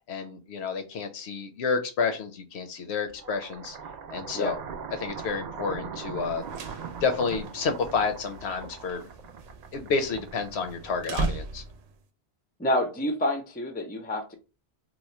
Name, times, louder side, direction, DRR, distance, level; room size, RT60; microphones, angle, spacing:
voice 1, 0.1-3.8 4.1-4.5 5.0-6.4 7.0-9.0 9.7-11.6, left 5 dB, 80° left, 7 dB, 0.9 m, -30 dB
sound 1, 3.1-11.3, right 6 dB, 55° right, 0.5 m, -40 dB
sound 2, 6.3-12.0, right 3 dB, 80° right, 0.9 m, -37 dB
voice 2, 12.6-14.4, left 1 dB, 15° left, 6 dB, 0.3 m, -28 dB
3.0 x 2.1 x 4.1 m, 0.31 s
omnidirectional pair, 1.1 m